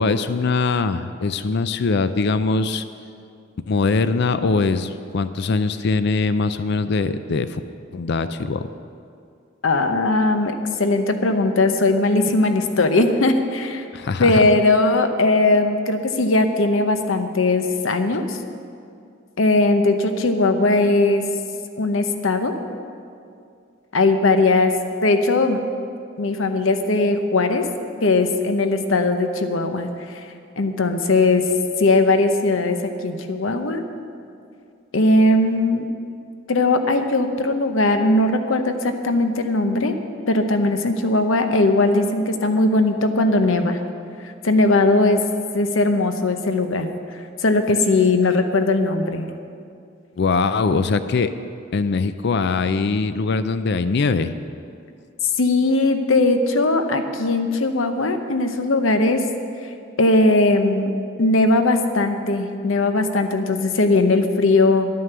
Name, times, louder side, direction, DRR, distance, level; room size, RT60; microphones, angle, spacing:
voice 1, 0.0-2.8 3.7-7.6 7.9-8.7 13.9-14.4 50.2-51.3 51.7-54.4, left 4 dB, 55° left, 12 dB, 0.4 m, -22 dB
voice 2, 9.6-13.9 14.2-18.4 19.4-21.2 21.8-22.5 23.9-24.7 25.0-25.6 26.2-27.6 28.0-30.2 30.6-31.4 31.8-33.8 34.9-35.9 36.5-40.0 40.3-43.8 44.4-45.2 45.5-46.9 47.4-49.3 55.4-59.2 60.0-60.9 61.2-64.9, left 2 dB, 80° left, 7 dB, 0.9 m, -19 dB
11.0 x 9.4 x 6.8 m, 2.4 s
head